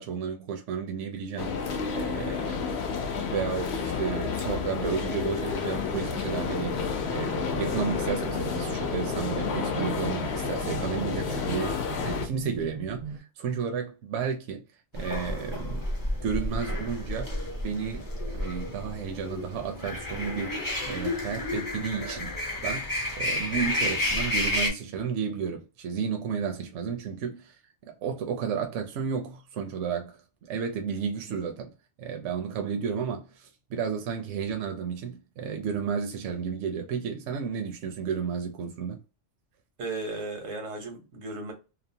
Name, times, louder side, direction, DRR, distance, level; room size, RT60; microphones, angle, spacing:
voice 1, 0.0-1.6 1.9-2.6 3.3-6.8 7.1-14.6 14.9-15.9 16.2-17.3 17.6-27.6 27.8-31.7 32.0-39.0, right 6 dB, 75° right, 0.8 m, -32 dB
sound 1, 1.4-12.3, left 5 dB, 65° left, 0.8 m, -30 dB
sound 2, 5.7-13.2, right 6 dB, 45° right, 0.4 m, -40 dB
sound 3, 14.9-24.7, left 1 dB, 25° left, 0.5 m, -31 dB
voice 2, 39.8-41.5, right 2 dB, 90° right, 1.2 m, -35 dB
2.8 x 2.0 x 2.6 m
omnidirectional pair, 1.3 m